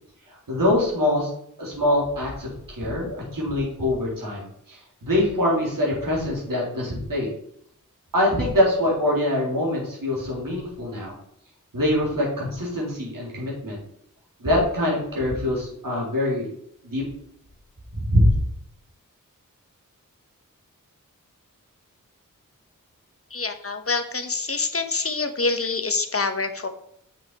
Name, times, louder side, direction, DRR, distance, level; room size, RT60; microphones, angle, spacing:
voice 1, 0.3-1.3 1.6-7.3 8.1-11.1 11.7-13.8 14.4-16.5 16.8-17.0 18.0-18.3, left 1 dB, 85° right, -4 dB, 3.5 m, -24 dB
voice 2, 23.3-26.7, left 3 dB, 45° left, 8 dB, 1.0 m, -26 dB
7.3 x 6.5 x 4.2 m, 0.72 s
wide cardioid pair, 70°, 33 cm